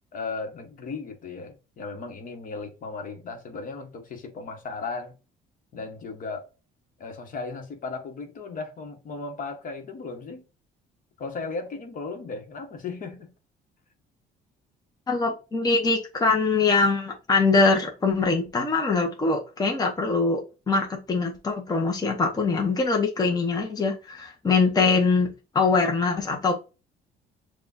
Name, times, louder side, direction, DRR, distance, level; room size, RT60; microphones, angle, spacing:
voice 1, 0.1-5.2 5.7-6.5 7.0-10.4 11.2-13.3, left 4 dB, 55° left, 1.2 m, -36 dB
voice 2, 15.1-20.4 20.7-25.3 25.5-26.5, left 4 dB, 20° left, 0.9 m, -23 dB
6.8 x 2.4 x 2.6 m
cardioid pair, 110°, 17 cm